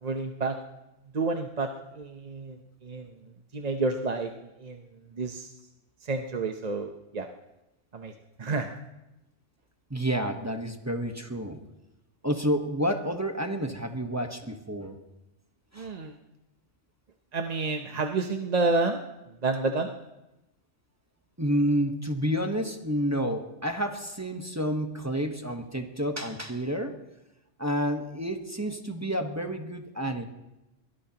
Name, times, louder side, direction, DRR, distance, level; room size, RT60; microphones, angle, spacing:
voice 1, 0.0-0.5 1.1-1.7 1.9-2.6 2.8-3.1 3.5-4.8 5.1-5.5 6.0-7.3 7.9-8.1 8.4-8.8 15.7-16.1 17.3-19.0 19.4-20.0, right 3 dB, 40° right, 4 dB, 0.8 m, -29 dB
voice 2, 9.9-11.6 12.2-15.0 15.7-15.9 21.4-27.0 27.6-30.2, equal, 15° right, 4 dB, 1.0 m, -29 dB
22.5 x 18.0 x 2.9 m, 0.96 s
omnidirectional pair, 1.3 m